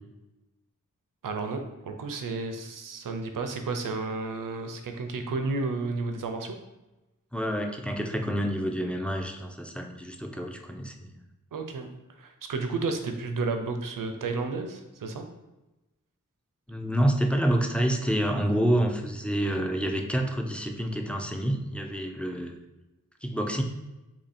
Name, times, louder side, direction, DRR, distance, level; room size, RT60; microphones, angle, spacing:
voice 1, 1.2-6.6 11.5-11.9 12.2-15.3, right 3 dB, 85° right, 6 dB, 0.5 m, -32 dB
voice 2, 7.3-11.1 16.7-22.6 23.2-23.6, equal, 5° left, 3 dB, 0.3 m, -28 dB
2.8 x 2.7 x 4.1 m, 1.0 s
wide cardioid pair, 80°, 32 cm